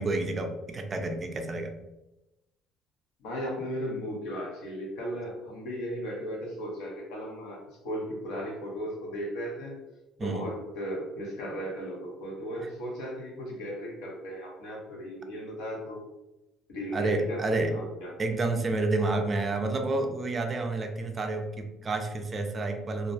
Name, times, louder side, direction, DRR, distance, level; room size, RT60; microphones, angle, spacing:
voice 1, 0.0-1.7 10.2-10.5 16.9-17.7 18.2-23.1, right 2 dB, 30° right, 5 dB, 0.3 m, -29 dB
voice 2, 3.2-9.8 10.2-16.0 16.7-18.1, equal, 90° left, -2 dB, 0.8 m, -36 dB
2.3 x 2.0 x 2.6 m, 0.96 s
cardioid pair, 120°, 0 cm